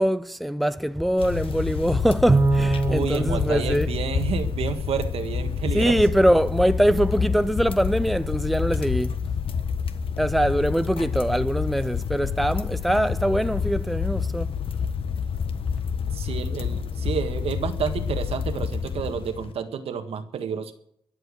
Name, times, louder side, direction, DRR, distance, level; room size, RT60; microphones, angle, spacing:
voice 1, 0.0-3.9 5.7-9.1 10.2-14.5, equal, ahead, 0.5 m, -23 dB
sound 1, 1.2-19.5, left 6 dB, 60° left, 1.3 m, -28 dB
Bowed string instrument, 2.3-4.9, right 3 dB, 25° right, 1.1 m, -24 dB
voice 2, 2.8-6.0 16.1-20.7, right 7 dB, 75° right, 1.6 m, -30 dB
22.5 x 7.9 x 6.6 m
cardioid pair, 105°, 10 cm